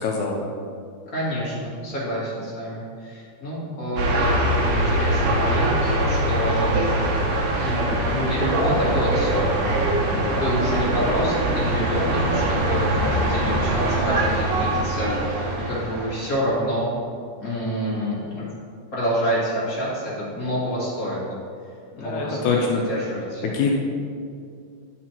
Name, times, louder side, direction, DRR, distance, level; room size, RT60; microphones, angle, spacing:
voice 1, 0.0-0.4 22.0-22.8 23.5-23.7, left 5 dB, 75° left, -1 dB, 1.9 m, -24 dB
voice 2, 1.1-4.3 4.6-6.9 7.2-7.3 7.6-9.5 9.9-16.9 17.4-18.5 18.9-21.2 22.0-23.4, equal, 35° left, -7 dB, 1.7 m, -27 dB
sound 1, 4.0-16.4, right 1 dB, 70° right, 1.4 m, -23 dB
9.9 x 4.3 x 4.4 m, 2.3 s
omnidirectional pair, 3.8 m